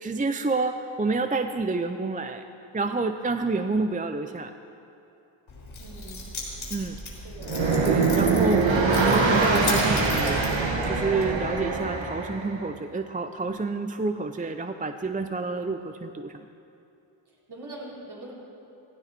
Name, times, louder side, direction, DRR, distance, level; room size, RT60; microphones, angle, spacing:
voice 1, 0.0-2.4 2.7-4.5 6.7-7.0 7.8-8.7 9.0-10.4 10.9-16.5, right 3 dB, 20° right, 7 dB, 0.5 m, -28 dB
Keys jangling, 5.5-11.5, left 2 dB, 85° left, 4.0 m, -37 dB
voice 2, 5.8-6.2 7.2-7.5 17.5-18.3, right 2 dB, 55° right, -5 dB, 4.1 m, -42 dB
sound 1, 7.4-12.5, right 3 dB, 70° right, 1.8 m, -23 dB
16.0 x 15.5 x 4.3 m, 2.8 s
wide cardioid pair, 80°, 47 cm